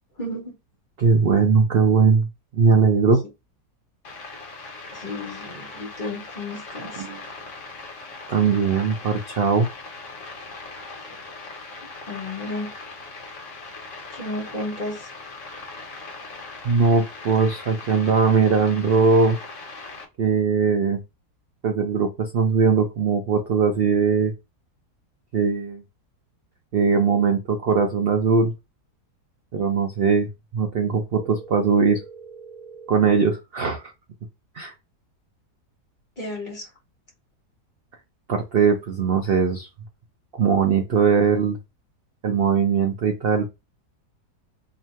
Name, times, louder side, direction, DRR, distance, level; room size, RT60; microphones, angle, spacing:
voice 1, 0.2-0.6 4.9-7.1 12.1-12.7 14.1-15.1 36.2-36.7, left 1 dB, 30° left, 1.4 m, -33 dB
voice 2, 1.0-2.3 2.5-3.2 7.0-7.2 8.3-9.7 16.6-19.4 20.2-21.0 21.6-24.3 25.3-25.8 26.7-28.5 29.5-32.0 32.9-33.9 34.6-34.7 38.3-39.7 40.3-41.6 42.2-43.5, right 5 dB, 65° right, 0.5 m, -20 dB
sound 1, 4.0-20.0, left 3 dB, 50° left, 1.3 m, -39 dB
sound 2, 26.9-27.2 31.2-33.2, right 5 dB, 45° right, 1.0 m, -43 dB
3.0 x 2.8 x 4.3 m
omnidirectional pair, 1.7 m